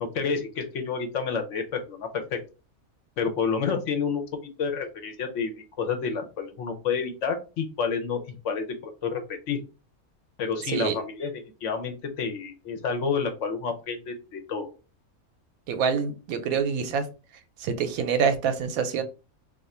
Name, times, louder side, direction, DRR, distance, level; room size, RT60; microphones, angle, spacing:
voice 1, 0.0-2.4 3.2-4.2 4.6-5.5 5.8-9.6 10.4-14.7, left 5 dB, 65° left, 0.9 m, -29 dB
voice 2, 15.7-17.1 17.6-19.0, right 6 dB, 85° right, 1.0 m, -26 dB
2.5 x 2.4 x 4.1 m
omnidirectional pair, 1.5 m